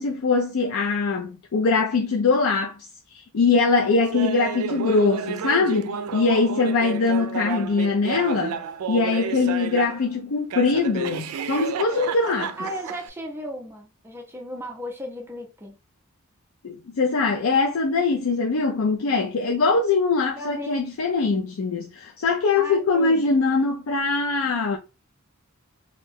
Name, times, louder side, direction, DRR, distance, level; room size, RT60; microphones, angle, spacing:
voice 1, 0.0-2.8 3.3-8.6 8.9-12.5 16.6-24.8, left 4 dB, 70° left, 0.4 m, -22 dB
Laughter, 4.1-10.1 10.5-13.1, right 7 dB, 85° right, 0.4 m, -31 dB
voice 2, 12.6-15.8 20.4-20.8 22.5-23.2, equal, 10° right, 0.4 m, -35 dB
2.6 x 2.1 x 3.3 m
head